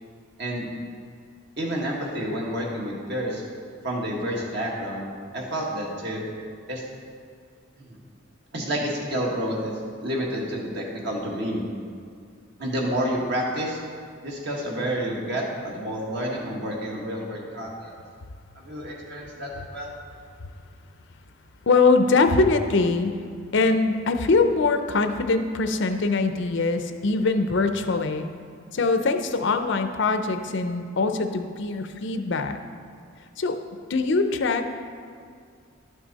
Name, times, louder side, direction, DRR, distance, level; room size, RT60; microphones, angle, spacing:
voice 1, 1.6-3.4 3.8-5.1 5.3-6.2 6.7-6.8 7.8-8.0 8.5-9.7 10.0-11.6 12.6-13.8 14.2-17.9 18.5-19.9, equal, 55° right, -2 dB, 1.6 m, -29 dB
voice 2, 21.7-23.1 23.5-28.3 28.7-32.6 33.4-33.6 33.9-34.7, left 3 dB, 60° left, 7 dB, 0.5 m, -22 dB
11.5 x 6.2 x 4.1 m, 2.2 s
head